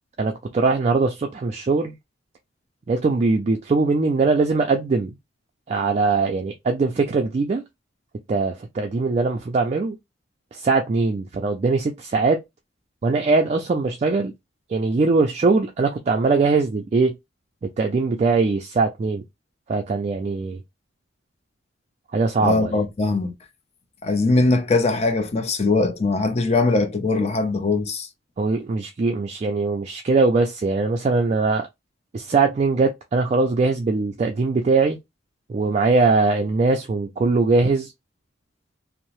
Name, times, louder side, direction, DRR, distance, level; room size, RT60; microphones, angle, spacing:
voice 1, 0.2-1.9 2.9-5.1 5.7-7.6 8.3-10.0 10.5-12.4 13.0-14.3 14.7-17.1 17.6-19.2 19.7-20.6 22.1-22.8 28.4-31.7 32.1-35.0 35.5-37.9, right 3 dB, 35° right, 0.3 m, -21 dB
voice 2, 22.4-23.3 24.0-28.1, left 3 dB, 35° left, 0.5 m, -21 dB
2.7 x 2.0 x 2.9 m
head